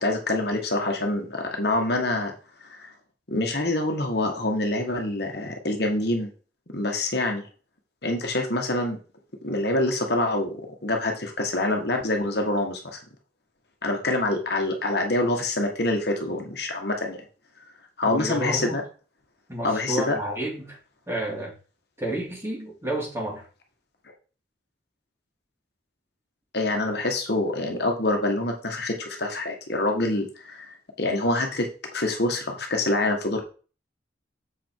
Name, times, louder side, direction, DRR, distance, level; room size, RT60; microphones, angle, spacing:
voice 1, 0.0-2.3 2.6-2.9 3.3-6.3 6.7-7.4 8.0-9.0 9.4-13.0 13.8-17.2 18.0-18.8 19.6-20.1 26.5-33.4, left 2 dB, 55° left, 3 dB, 1.4 m, -26 dB
voice 2, 18.0-18.8 19.5-20.8 21.1-21.5 22.0-23.5, right 1 dB, 15° right, -3 dB, 2.7 m, -30 dB
7.1 x 5.1 x 4.5 m, 0.36 s
head